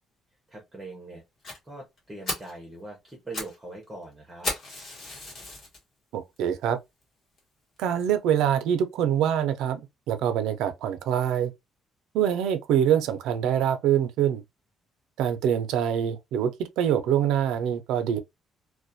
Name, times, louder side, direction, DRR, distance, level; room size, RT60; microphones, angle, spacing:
voice 1, 0.5-1.2 1.6-4.5, right 2 dB, 10° right, 0.6 m, -42 dB
Fire, 1.4-1.6 2.0-2.1 2.3-2.6 3.1-3.6 3.8-3.9 4.4-5.8 6.4-6.5 7.0-7.1 7.4-7.5 7.8-7.9, left 2 dB, 35° left, 1.1 m, -34 dB
voice 2, 6.1-6.8 7.8-9.8 10.1-11.5 12.1-14.4 15.2-16.5 16.8-18.2, right 9 dB, 85° right, 0.4 m, -24 dB
2.3 x 2.1 x 2.5 m
cardioid pair, 175°, 0 cm